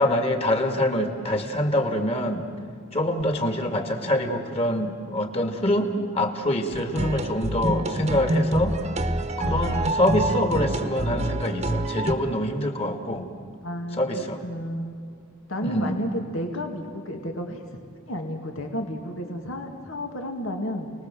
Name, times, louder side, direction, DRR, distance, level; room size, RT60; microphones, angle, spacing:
voice 1, 0.0-2.5 2.9-8.7 9.4-13.3 14.0-14.4 15.6-16.0, left 1 dB, 30° left, 5 dB, 2.1 m, -25 dB
sound 1, 6.7-12.1, right 1 dB, 30° right, 1.1 m, -26 dB
voice 2, 9.4-9.9 13.6-15.0 15.5-17.6 18.1-20.9, equal, 80° left, 3 dB, 2.5 m, -32 dB
29.5 x 20.0 x 7.7 m, 2.4 s
head